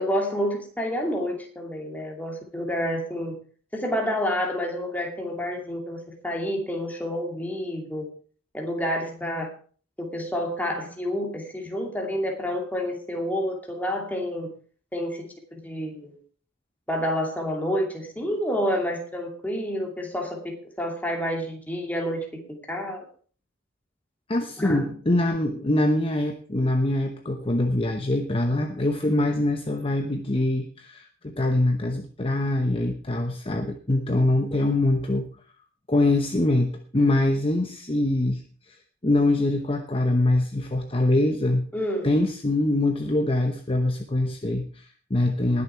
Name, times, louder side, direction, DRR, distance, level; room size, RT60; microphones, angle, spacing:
voice 1, 0.0-3.3 3.7-8.1 8.5-9.5 10.0-14.5 14.9-15.3 15.5-16.2 16.9-23.0 24.6-24.9 41.7-42.1, equal, 10° left, 1 dB, 2.6 m, -29 dB
voice 2, 24.3-35.3 35.9-38.4 38.7-38.8 39.0-41.7 42.0-45.6, left 1 dB, 30° left, 5 dB, 0.9 m, -24 dB
20.0 x 6.9 x 4.6 m, 0.43 s
head